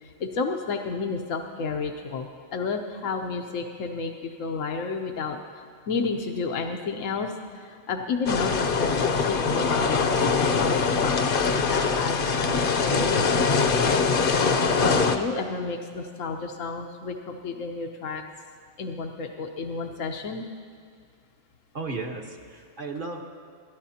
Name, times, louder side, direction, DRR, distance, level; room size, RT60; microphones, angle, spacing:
voice 1, 0.0-5.4 5.9-11.2 11.5-14.0 14.8-18.2 18.8-20.4, left 4 dB, 90° left, 4 dB, 1.2 m, -31 dB
sound 1, 8.3-15.2, left 5 dB, 50° left, 0.8 m, -23 dB
voice 2, 21.7-23.2, right 3 dB, 45° right, 2 dB, 1.4 m, -34 dB
27.0 x 12.5 x 2.8 m, 2.3 s
omnidirectional pair, 1.3 m